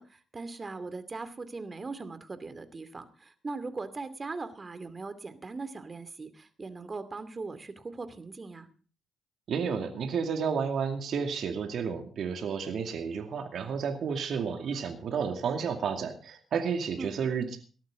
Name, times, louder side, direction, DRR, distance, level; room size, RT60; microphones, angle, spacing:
voice 1, 0.0-8.7 17.0-17.2, right 3 dB, 35° right, 12 dB, 2.5 m, -40 dB
voice 2, 9.5-17.6, right 6 dB, 65° right, 5 dB, 2.4 m, -31 dB
19.0 x 13.0 x 3.8 m, 0.39 s
hypercardioid pair, 45°, 0 cm